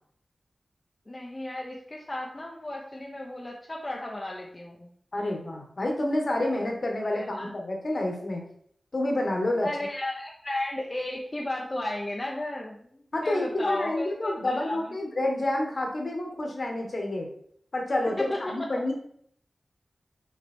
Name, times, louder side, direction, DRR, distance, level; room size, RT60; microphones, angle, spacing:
voice 1, 1.1-4.9 7.1-7.5 9.6-14.8 18.2-18.7, left 1 dB, 25° left, -2 dB, 1.0 m, -34 dB
voice 2, 5.1-8.4 8.9-9.7 13.1-17.3 17.7-18.9, left 1 dB, 50° left, 1 dB, 1.6 m, -28 dB
6.2 x 4.9 x 4.5 m, 0.65 s
wide cardioid pair, 110°, 0 cm